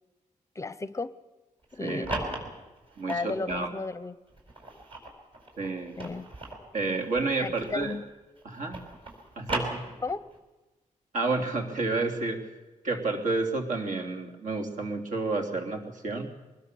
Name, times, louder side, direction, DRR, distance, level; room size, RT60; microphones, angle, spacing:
voice 1, 0.5-1.1 1.7-2.2 3.1-4.2 6.0-6.3 7.4-8.0 10.0-10.2, left 3 dB, 20° left, 15 dB, 0.6 m, -34 dB
sound 1, 1.6-3.8 4.3-8.1 8.4-10.4, right 2 dB, 40° right, 5.0 m, -37 dB
voice 2, 1.8-2.1 3.0-3.7 5.6-5.9 6.7-7.9 8.4-8.8 9.3-9.8 11.1-12.4 12.8-16.3, right 3 dB, 70° right, 4 dB, 3.2 m, -30 dB
23.5 x 20.0 x 6.9 m, 1.2 s
wide cardioid pair, 175°, 13 cm